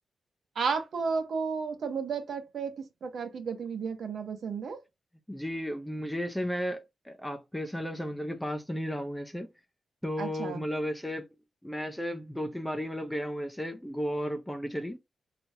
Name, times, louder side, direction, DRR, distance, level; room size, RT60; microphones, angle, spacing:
voice 1, 0.5-4.8 10.2-10.6, right 5 dB, 65° right, 0.9 m, -33 dB
voice 2, 5.3-6.8 7.1-9.5 10.0-11.3 11.6-15.0, equal, 5° left, 0.6 m, -34 dB
3.4 x 2.9 x 2.7 m
wide cardioid pair, 125°, 0 cm